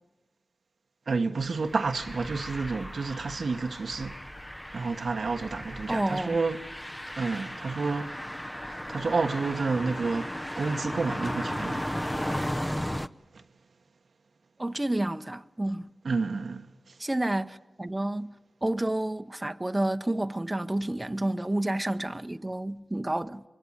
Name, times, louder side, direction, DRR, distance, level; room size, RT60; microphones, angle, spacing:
voice 1, 1.1-4.2 4.7-6.7 7.1-8.3 8.7-11.9 13.3-13.4 16.0-17.0, right 4 dB, 75° right, 1.3 m, -30 dB
sound 1, 1.4-13.1, equal, 10° left, 0.9 m, -35 dB
voice 2, 5.9-6.4 14.6-15.9 17.0-18.3 18.6-23.4, right 1 dB, 25° right, 1.0 m, -30 dB
24.5 x 22.5 x 9.7 m
cardioid pair, 40°, 0 cm